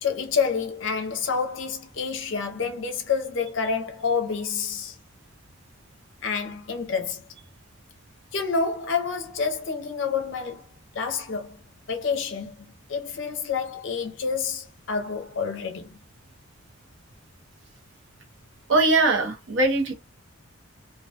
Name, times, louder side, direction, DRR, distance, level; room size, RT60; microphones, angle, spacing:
voice 1, 0.0-5.0 6.2-7.2 8.3-10.6 10.9-11.6 11.9-12.6 12.9-16.0, left 5 dB, 60° left, 0.5 m, -28 dB
voice 2, 18.7-19.9, right 2 dB, 60° right, 0.6 m, -21 dB
2.2 x 2.1 x 2.7 m
head